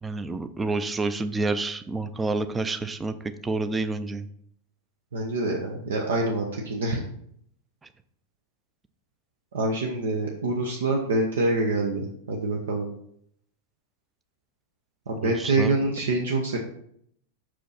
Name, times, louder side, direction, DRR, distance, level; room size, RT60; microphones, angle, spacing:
voice 1, 0.0-3.1 3.4-4.3 15.2-15.7, right 3 dB, 15° right, 10 dB, 0.5 m, -28 dB
voice 2, 5.1-7.0 9.5-12.9 15.1-16.6, right 2 dB, 65° right, 1 dB, 0.8 m, -26 dB
5.9 x 5.0 x 4.0 m, 0.69 s
figure-of-eight pair, 90°, 0 cm